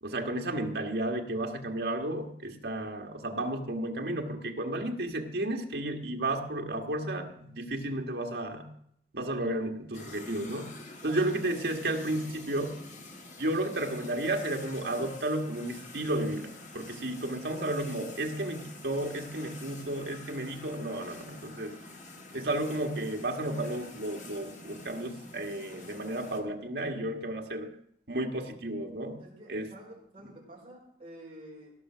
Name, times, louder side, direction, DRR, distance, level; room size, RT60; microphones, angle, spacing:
voice 1, 0.0-8.7 9.1-10.7 11.0-12.8 13.4-16.5 16.7-21.7 22.3-27.7 28.1-29.2 29.5-29.7, right 1 dB, 75° right, 3 dB, 1.7 m, -33 dB
sound 1, 9.9-26.4, left 2 dB, 45° left, 1.6 m, -47 dB
voice 2, 29.2-31.7, right 1 dB, 35° right, -3 dB, 4.5 m, -49 dB
17.0 x 6.7 x 6.2 m, 0.69 s
head